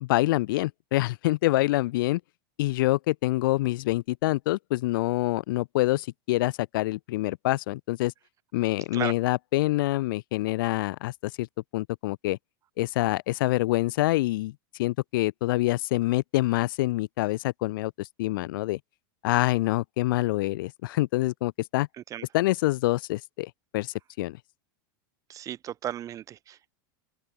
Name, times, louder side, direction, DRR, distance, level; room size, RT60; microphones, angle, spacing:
voice 1, 0.0-2.2 2.6-8.1 8.5-11.5 11.7-12.4 12.8-14.5 14.8-18.8 19.2-21.9 22.3-24.4, left 18 dB, 75° left, 0.4 m, -26 dB
voice 2, 25.3-26.7, right 11 dB, 30° right, 2.4 m, -35 dB
open air
supercardioid pair, 145°, 11 cm